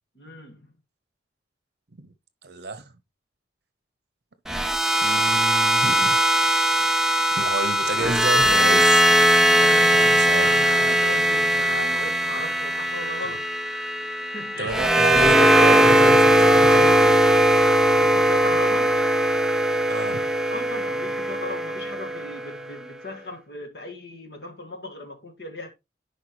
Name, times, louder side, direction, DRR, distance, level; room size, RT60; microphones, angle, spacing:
voice 1, 0.2-0.7 9.5-13.5 14.3-14.8 17.9-19.0 20.5-25.7, left 1 dB, 60° left, 1.8 m, -37 dB
voice 2, 2.4-2.9 5.0-6.2 7.4-9.1 9.9-10.6 14.6-17.0 19.9-20.3, right 2 dB, 60° right, 1.0 m, -30 dB
sound 1, 4.5-22.6, right 1 dB, 5° right, 0.4 m, -19 dB
10.5 x 5.1 x 3.0 m
head